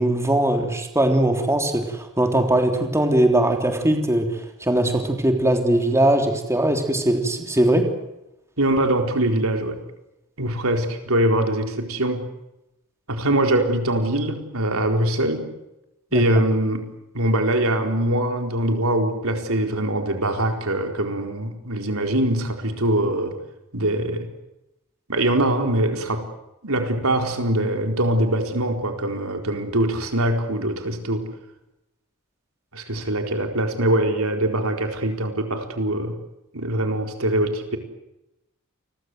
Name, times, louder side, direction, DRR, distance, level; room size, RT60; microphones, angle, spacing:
voice 1, 0.0-7.9 16.1-16.2, right 1 dB, 15° right, 4 dB, 3.4 m, -20 dB
voice 2, 8.6-9.8 10.4-12.3 13.1-15.5 16.1-16.9 17.1-23.3 23.7-24.3 25.1-26.3 26.6-31.2 32.7-36.1 36.5-37.8, right 1 dB, 75° right, 5 dB, 4.4 m, -23 dB
29.0 x 22.5 x 8.0 m, 0.91 s
head